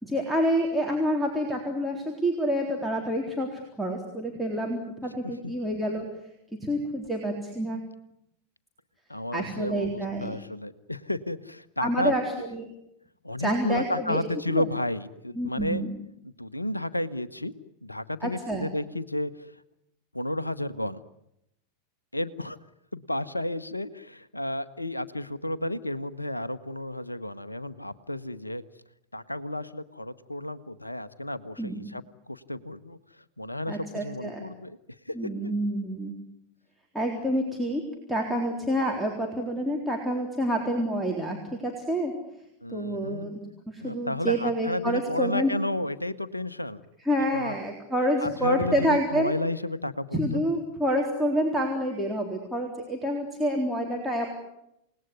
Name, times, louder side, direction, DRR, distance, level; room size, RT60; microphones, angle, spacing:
voice 1, 0.0-6.0 6.6-7.8 9.3-10.4 11.8-12.7 13.4-14.2 14.5-14.6 15.4-15.9 18.2-18.7 31.6-31.8 33.7-34.4 35.1-36.2 36.9-37.8 38.1-41.4 41.6-42.1 42.7-45.5 47.0-49.3 50.1-54.3, equal, ahead, -1 dB, 3.9 m, -28 dB
voice 2, 9.1-12.1 13.2-15.8 16.2-17.5 17.8-19.5 20.1-21.0 22.1-22.6 22.9-28.6 29.1-34.8 35.1-35.5 42.6-43.3 43.8-46.8 47.3-47.5 48.2-50.4, left 1 dB, 85° left, 15 dB, 1.1 m, -32 dB
28.5 x 19.5 x 9.7 m, 0.81 s
figure-of-eight pair, 90°, 0 cm